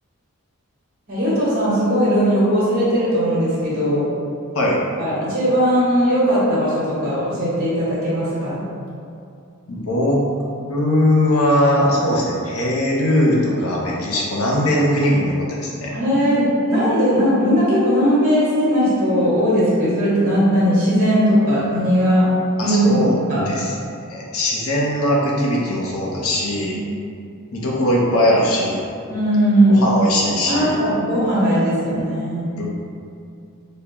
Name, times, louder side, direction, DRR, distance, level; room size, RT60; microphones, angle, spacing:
voice 1, 1.1-4.0 5.0-8.6 15.8-22.3 22.6-23.5 29.1-29.9 30.5-32.5, equal, 45° right, -8 dB, 1.0 m, -18 dB
voice 2, 9.7-10.2 10.7-15.9 22.6-23.2 23.5-23.7 24.1-26.8 27.5-28.9 29.7-30.7 32.5-32.7, left 1 dB, 75° left, -3 dB, 0.6 m, -20 dB
3.6 x 2.1 x 2.9 m, 2.4 s
head